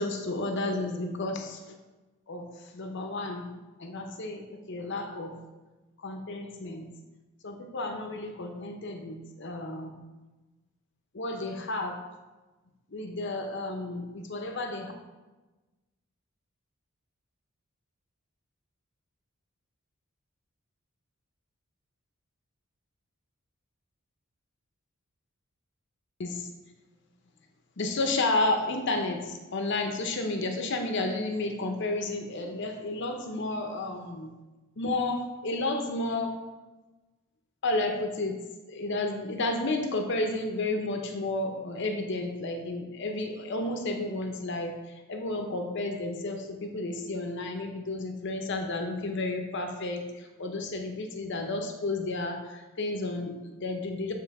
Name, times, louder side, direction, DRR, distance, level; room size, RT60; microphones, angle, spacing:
voice 1, 0.0-1.7 2.3-5.4 6.0-6.9 7.4-9.9 11.1-12.0 12.9-14.9 26.2-26.5 27.8-34.3 34.8-36.4 37.6-38.4 38.7-54.1, left 2 dB, 55° left, 4 dB, 0.7 m, -32 dB
7.9 x 3.2 x 4.7 m, 1.2 s
head